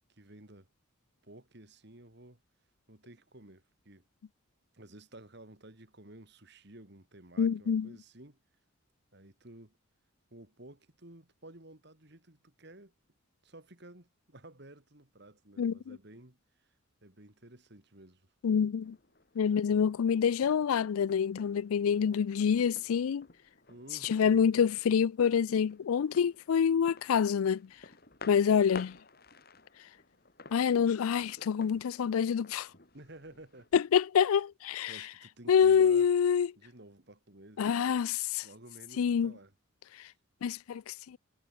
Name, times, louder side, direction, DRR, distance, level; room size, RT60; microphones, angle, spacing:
voice 1, 0.1-0.7 1.2-2.4 2.9-4.0 4.7-8.4 9.1-9.8 10.3-12.9 13.4-16.4 17.0-18.3 23.7-24.5 32.9-33.8 34.9-36.1 36.6-37.7 38.4-39.5 40.0-40.1, right 1 dB, 50° right, 2.6 m, -53 dB
voice 2, 7.4-7.9 15.6-16.0 18.4-19.0 19.4-23.3 24.0-27.6 28.3-29.0 30.5-32.7 33.7-34.9 35.5-36.5 37.6-38.5 39.0-39.3 40.4-41.2, left 7 dB, 85° left, 0.4 m, -27 dB
sound 1, 18.8-33.7, left 3 dB, 45° left, 3.9 m, -53 dB
head